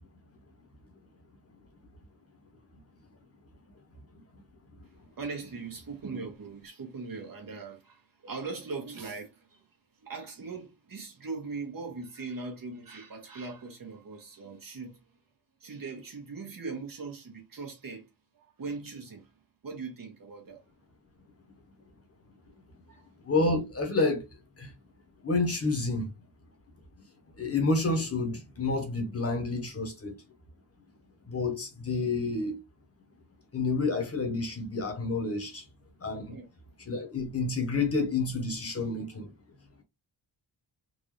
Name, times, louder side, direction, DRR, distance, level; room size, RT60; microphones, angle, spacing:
voice 1, 5.2-9.7 10.0-15.0 15.6-18.1 18.3-19.3 19.6-20.6 22.4-22.6 22.9-23.1 36.3-36.5, right 4 dB, 55° right, 1.3 m, -40 dB
voice 2, 23.2-24.2 24.6-24.7 25.2-26.1 27.4-30.1 31.2-32.6 33.5-35.7 36.0-36.3 36.8-39.3, left 3 dB, 35° left, 1.0 m, -29 dB
3.8 x 2.6 x 3.1 m
wide cardioid pair, 160°, 41 cm